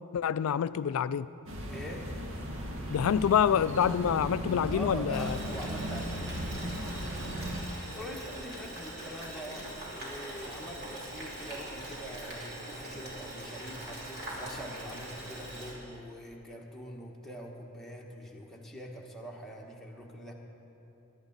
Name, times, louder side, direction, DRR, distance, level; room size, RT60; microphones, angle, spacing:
voice 1, 0.1-1.3 2.9-5.4, left 8 dB, 65° left, 16 dB, 0.3 m, -27 dB
sound 1, 1.5-7.6, equal, 60° right, 1.5 m, -37 dB
voice 2, 1.7-2.1 4.7-6.5 7.9-20.3, equal, ahead, -2 dB, 1.3 m, -44 dB
Boiling, 5.1-15.7, right 1 dB, 45° right, 3.3 m, -42 dB
22.0 x 11.0 x 4.0 m, 2.9 s
head